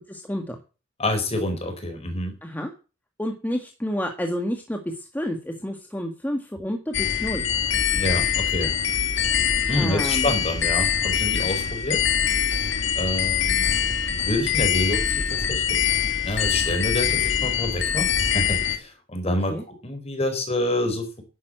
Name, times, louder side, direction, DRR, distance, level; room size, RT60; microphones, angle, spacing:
voice 1, 0.1-0.6 2.4-2.7 3.2-7.5 9.8-10.3 19.5-19.6, equal, 10° left, 3 dB, 1.7 m, -29 dB
voice 2, 1.0-2.3 7.9-8.7 9.7-12.0 13.0-13.7 14.1-15.8 16.2-19.6 19.8-21.2, left 1 dB, 35° left, 6 dB, 4.4 m, -27 dB
sound 1, 6.9-18.8, left 8 dB, 65° left, 2.0 m, -24 dB
11.5 x 9.9 x 7.7 m, 0.33 s
head